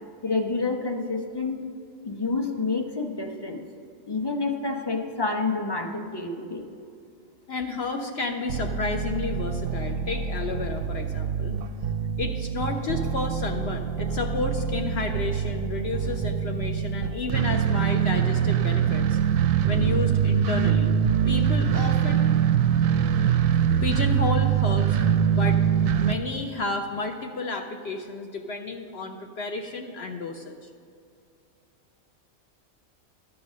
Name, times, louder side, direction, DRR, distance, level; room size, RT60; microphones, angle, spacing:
voice 1, 0.2-1.6 2.0-3.6 4.0-6.6, left 3 dB, 25° left, 3 dB, 0.7 m, -28 dB
voice 2, 7.5-11.6 12.2-19.2 19.7-20.9 21.3-22.3 23.8-25.0 25.3-25.6 26.0-30.6, left 3 dB, 60° left, 4 dB, 0.8 m, -31 dB
sound 1, 8.5-26.1, right 8 dB, 85° right, 1.0 m, -24 dB
12.0 x 7.3 x 6.2 m, 2.4 s
omnidirectional pair, 1.4 m